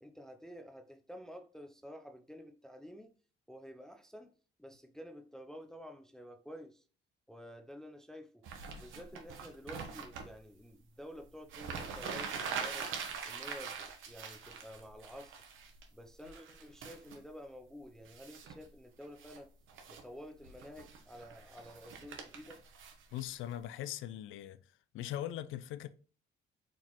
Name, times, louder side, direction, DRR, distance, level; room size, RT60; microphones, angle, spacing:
voice 1, 0.0-3.1 3.5-4.3 4.6-6.8 7.3-8.4 8.7-12.9 13.3-15.4 15.9-19.5 19.9-22.6, equal, 5° left, 0.5 m, -50 dB
sound 1, 8.4-10.3 11.2-11.3 11.5-15.8 16.2-17.2 18.0-18.6 19.0-19.4 19.7-20.0 20.4-23.6, right 6 dB, 85° right, 0.9 m, -43 dB
voice 2, 23.1-24.6 24.9-25.9, left 12 dB, 80° left, 0.4 m, -40 dB
4.5 x 3.7 x 3.0 m
cardioid pair, 90°, 20 cm